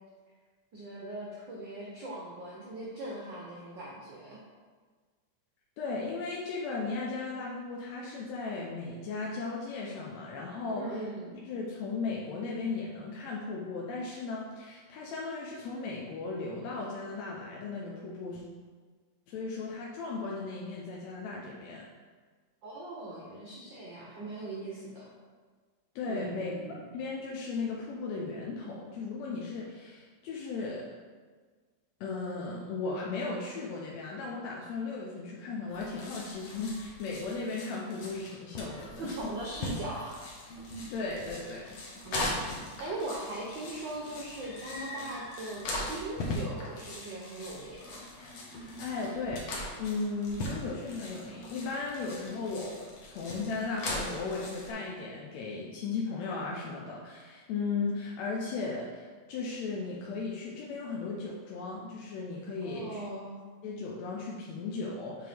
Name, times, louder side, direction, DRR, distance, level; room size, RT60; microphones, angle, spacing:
voice 1, 0.7-4.4 10.8-11.3 22.6-25.1 26.1-26.9 39.0-40.2 42.0-42.4 42.8-48.1 62.6-63.4, right 2 dB, 75° right, -3 dB, 1.0 m, -40 dB
voice 2, 5.8-11.0 11.5-18.4 19.3-21.9 26.0-30.9 32.0-39.1 40.9-41.8 48.6-63.1 63.6-65.3, left 4 dB, 75° left, -3 dB, 1.9 m, -36 dB
sound 1, 35.7-54.7, left 1 dB, 55° left, 1.6 m, -40 dB
7.8 x 4.7 x 3.5 m, 1.5 s
omnidirectional pair, 3.3 m